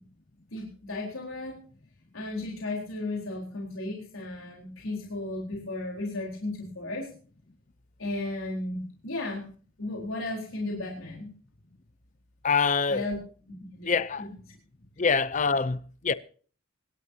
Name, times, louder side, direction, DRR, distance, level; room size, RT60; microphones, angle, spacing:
voice 1, 0.5-1.6 2.1-7.1 8.0-9.4 9.8-11.3 12.9-13.2 13.7-13.9 14.2-14.3, left 2 dB, 85° left, 4.2 m, -34 dB
voice 2, 12.4-13.1 13.8-14.3 15.0-16.1, left 5 dB, 35° left, 0.6 m, -25 dB
25.5 x 12.0 x 2.8 m
head